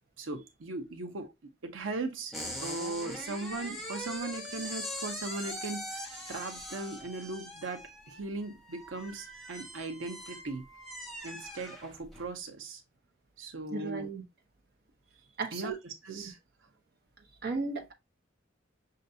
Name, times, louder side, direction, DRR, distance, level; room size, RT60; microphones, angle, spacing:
voice 1, 0.2-2.3 2.6-10.6 11.2-12.8 13.4-14.1 15.5-16.4, right 3 dB, 85° right, 0.8 m, -38 dB
sound 1, 2.3-12.3, equal, ahead, 1.1 m, -42 dB
voice 2, 13.7-14.2 15.4-15.7 16.1-16.3 17.4-17.9, right 3 dB, 50° right, 0.8 m, -35 dB
6.5 x 2.6 x 2.7 m
head